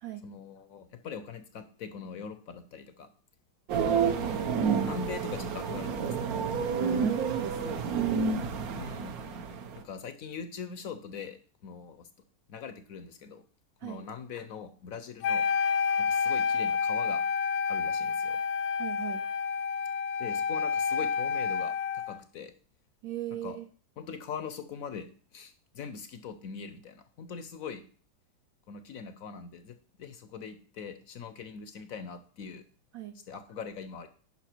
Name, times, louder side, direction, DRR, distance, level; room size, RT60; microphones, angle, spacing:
voice 1, 0.2-3.1 3.9-4.2 4.8-6.3 8.7-9.2 9.8-12.1 12.5-13.4 13.8-15.5 16.0-17.2 17.7-18.4 20.2-22.5 23.4-23.6 24.0-25.1 25.3-27.8 28.7-32.6 33.3-34.1, left 6 dB, 65° left, 10 dB, 0.9 m, -42 dB
sound 1, 3.7-9.8, right 6 dB, 60° right, 1.2 m, -30 dB
voice 2, 3.8-4.4 6.8-7.9 13.8-14.0 18.8-19.2 23.0-23.7 32.9-33.1, right 11 dB, 75° right, 7 dB, 0.8 m, -37 dB
Wind instrument woodwind instrument, 15.2-22.2, left 6 dB, 80° left, 1.3 m, -29 dB
9.9 x 5.6 x 4.4 m, 0.43 s
omnidirectional pair, 2.1 m